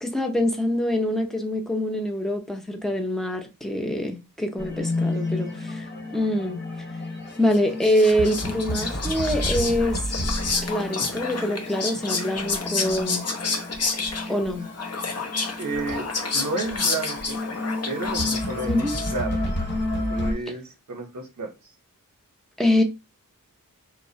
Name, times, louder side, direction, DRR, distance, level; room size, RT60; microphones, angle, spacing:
voice 1, 0.0-5.9 6.1-6.6 7.4-10.0 10.6-13.3 14.3-14.7 18.6-18.9 22.6-22.8, left 1 dB, ahead, 0.5 m, -25 dB
sound 1, 4.6-20.3, left 1 dB, 30° left, 1.1 m, -31 dB
Whispering, 7.5-19.5, left 4 dB, 50° left, 0.5 m, -30 dB
voice 2, 15.6-16.1 16.3-17.4 17.9-19.4 19.9-21.5, right 3 dB, 55° right, 0.7 m, -32 dB
2.8 x 2.0 x 2.7 m
wide cardioid pair, 80°, 34 cm